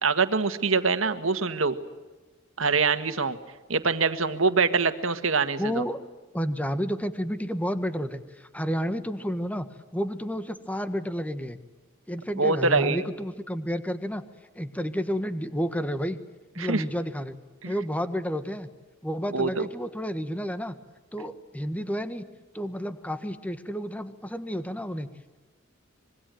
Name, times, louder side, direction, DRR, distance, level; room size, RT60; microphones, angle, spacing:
voice 1, 0.0-1.8 2.6-3.4 3.7-5.8 12.4-13.1 16.6-16.8 17.6-17.7 19.3-19.7, right 4 dB, 90° right, 10 dB, 1.7 m, -24 dB
voice 2, 5.6-6.0 6.3-9.7 9.9-11.6 12.1-14.2 14.5-16.2 16.5-17.4 17.6-18.7 19.0-20.8 21.1-22.3 22.5-25.1, equal, 5° left, 10 dB, 1.5 m, -30 dB
26.0 x 22.5 x 9.2 m, 1.2 s
head